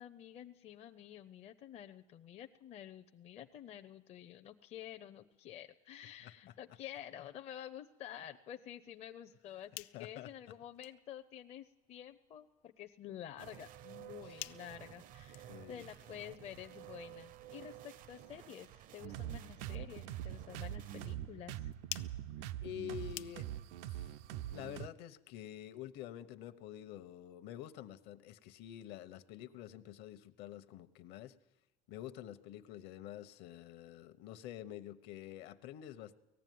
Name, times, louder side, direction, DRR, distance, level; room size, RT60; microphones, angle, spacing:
voice 1, 0.0-21.7, left 11 dB, 35° left, 6 dB, 0.6 m, -50 dB
voice 2, 6.2-6.5 9.9-10.3 14.2-14.4 15.5-15.9 22.6-23.5 23.9-24.1 24.5-31.4 31.9-36.2, left 12 dB, 55° left, 12 dB, 1.0 m, -48 dB
sound 1, 9.4-23.8, left 17 dB, 80° left, 0.6 m, -54 dB
sound 2, 13.4-21.2, right 12 dB, 45° right, 0.6 m, -54 dB
sound 3, 19.0-24.9, right 12 dB, 85° right, 0.6 m, -43 dB
19.0 x 14.5 x 9.3 m, 1.1 s
cardioid pair, 160°, 20 cm